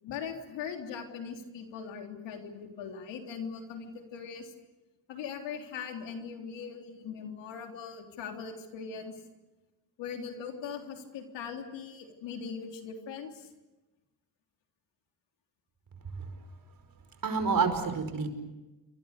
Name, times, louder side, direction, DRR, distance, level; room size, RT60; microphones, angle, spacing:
voice 1, 0.0-4.5 5.1-9.2 10.0-13.5, left 6 dB, 85° left, 3 dB, 3.6 m, -40 dB
voice 2, 17.2-18.3, right 5 dB, 50° right, 7 dB, 5.3 m, -29 dB
28.5 x 24.0 x 6.8 m, 1.1 s
cardioid pair, 70°, 43 cm